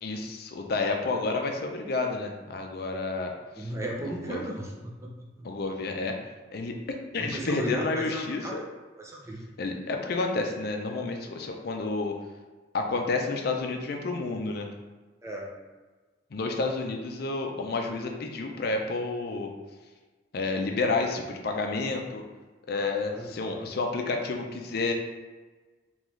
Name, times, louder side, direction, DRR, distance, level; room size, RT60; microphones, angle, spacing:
voice 1, 0.0-3.7 4.0-4.4 5.4-6.2 6.5-8.6 9.6-12.1 12.7-14.7 16.3-19.5 20.3-22.2 22.7-24.9, left 3 dB, 55° left, 3 dB, 0.4 m, -30 dB
voice 2, 3.6-5.3 7.2-8.0 8.4-8.7 9.0-9.5 15.2-15.5 23.1-23.7, right 1 dB, 15° right, -2 dB, 0.5 m, -35 dB
3.8 x 3.0 x 3.1 m, 1.3 s
head